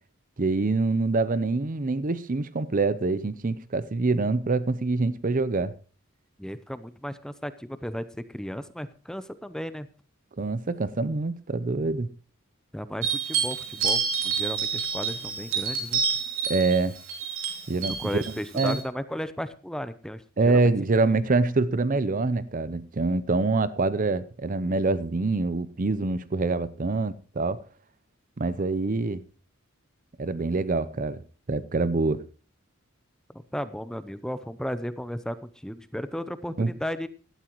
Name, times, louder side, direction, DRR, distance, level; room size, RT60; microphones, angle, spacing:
voice 1, 0.4-5.7 10.4-12.1 16.5-16.9 17.7-18.1 18.5-18.8 20.4-27.6 28.4-29.2 30.2-31.2 31.5-32.2 36.6-36.7, right 3 dB, 40° right, 0.6 m, -25 dB
voice 2, 6.4-9.9 12.7-16.0 18.0-20.7 33.3-37.1, equal, 5° left, 0.6 m, -35 dB
sound 1, 13.0-18.8, right 6 dB, 65° right, 3.0 m, -29 dB
17.0 x 12.5 x 3.0 m
head